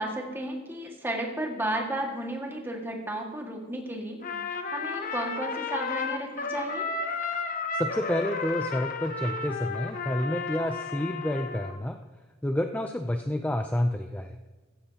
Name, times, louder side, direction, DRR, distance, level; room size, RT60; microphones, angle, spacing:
voice 1, 0.0-4.2 4.7-6.9, right 1 dB, 10° right, 0 dB, 1.9 m, -33 dB
Trumpet, 4.2-11.8, left 4 dB, 40° left, 1.0 m, -33 dB
voice 2, 7.7-12.0 12.4-14.4, left 1 dB, 10° left, 5 dB, 0.5 m, -29 dB
15.5 x 15.0 x 2.9 m, 1.2 s
head